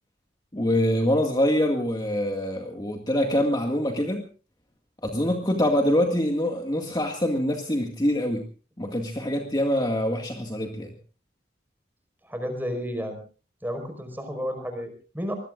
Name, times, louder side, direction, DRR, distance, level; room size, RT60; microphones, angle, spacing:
voice 1, 0.5-4.2 5.0-8.4 8.8-10.9, left 1 dB, 20° left, 3 dB, 2.0 m, -24 dB
voice 2, 12.2-13.2 13.6-15.3, equal, 10° right, 6 dB, 4.9 m, -32 dB
26.0 x 21.0 x 2.5 m, 0.37 s
head